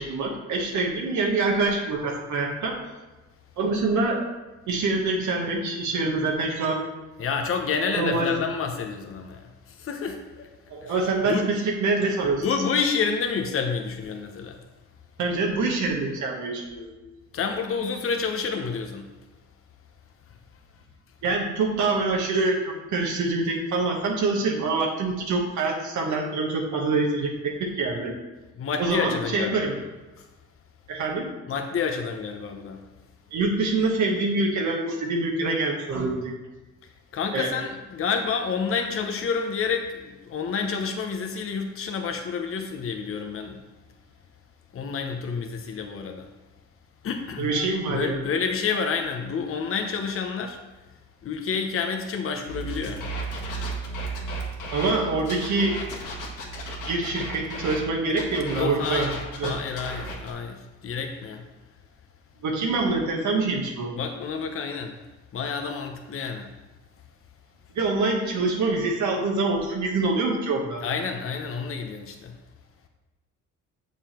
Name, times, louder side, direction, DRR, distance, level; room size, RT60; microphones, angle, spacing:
voice 1, 0.0-2.8 3.6-4.3 4.7-6.8 7.9-8.3 10.7-12.5 15.2-17.0 21.2-28.1 28.8-29.8 30.9-31.3 33.3-36.3 37.3-37.5 47.4-48.2 54.7-55.8 56.9-59.1 59.4-59.6 62.4-63.9 67.7-70.8, right 3 dB, 70° right, 0 dB, 1.4 m, -25 dB
voice 2, 7.2-10.5 10.8-10.9 11.2-11.5 12.4-14.6 17.3-19.1 28.6-29.8 30.2-30.3 31.5-32.9 37.1-43.6 44.7-46.3 47.0-47.5 47.9-50.6 51.2-53.0 58.6-59.1 59.4-61.5 63.9-65.0 65.3-66.5 70.8-72.4, left 5 dB, 45° left, 4 dB, 0.9 m, -29 dB
sound 1, 52.5-57.8 58.1-60.3, right 1 dB, 85° left, 1.6 m, -34 dB
7.1 x 5.5 x 4.4 m, 1.2 s
cardioid pair, 90°, 30 cm